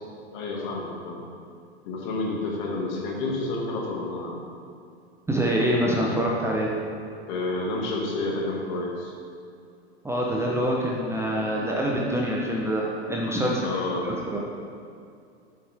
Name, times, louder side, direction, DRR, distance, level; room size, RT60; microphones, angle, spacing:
voice 1, 0.3-1.2 1.8-4.3 7.3-9.1 13.6-14.1, left 2 dB, 50° left, -2 dB, 1.9 m, -29 dB
voice 2, 5.3-6.7 10.0-13.7 14.0-14.4, equal, 10° right, -3 dB, 0.8 m, -25 dB
7.9 x 7.8 x 3.5 m, 2.4 s
hypercardioid pair, 100°, 33 cm